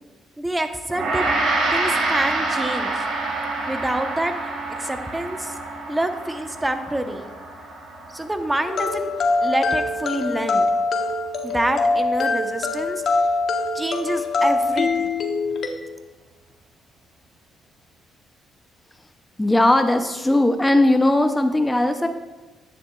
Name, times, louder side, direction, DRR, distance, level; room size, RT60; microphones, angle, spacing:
voice 1, 0.4-1.3 1.7-3.0 3.7-4.3 4.8-5.5 5.9-7.3 8.1-9.1 9.4-10.7 11.4-13.0 13.7-15.1, right 1 dB, 10° right, 7 dB, 0.8 m, -26 dB
Gong, 0.9-10.3, right 2 dB, 75° right, 3.0 m, -27 dB
sound 1, 8.7-15.7, left 3 dB, 60° left, 1.0 m, -23 dB
voice 2, 19.4-22.1, left 1 dB, 10° left, 6 dB, 0.5 m, -18 dB
10.5 x 9.6 x 2.3 m, 1.2 s
cardioid pair, 90°, 0 cm